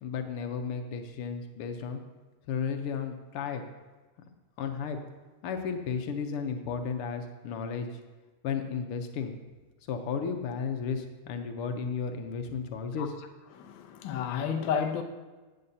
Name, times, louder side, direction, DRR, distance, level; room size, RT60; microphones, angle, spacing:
voice 1, 0.0-2.0 2.5-3.6 4.6-5.0 5.4-7.9 8.4-9.3 9.9-13.1, left 6 dB, 85° left, 1.7 m, -33 dB
voice 2, 13.5-15.0, left 7 dB, 70° left, 1.4 m, -31 dB
14.5 x 8.7 x 2.8 m
omnidirectional pair, 2.4 m